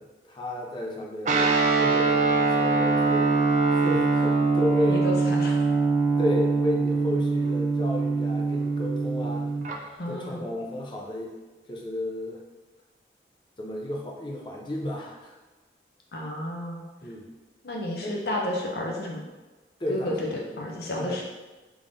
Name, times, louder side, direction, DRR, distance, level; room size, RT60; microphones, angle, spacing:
voice 1, 0.0-1.5 1.8-5.1 6.2-9.5 10.1-11.4 11.7-12.4 13.6-15.3 17.0-17.3 18.0-18.1 19.8-20.2 20.5-20.7 21.0-21.2, left 1 dB, 25° left, -1 dB, 0.5 m, -33 dB
Guitar, 1.2-9.8, right 3 dB, 40° right, 0.4 m, -23 dB
voice 2, 4.9-5.6 10.0-10.5 16.1-16.8 17.6-19.2 19.9-21.2, left 1 dB, 65° left, -1 dB, 0.7 m, -31 dB
3.6 x 3.2 x 2.6 m, 1.2 s
head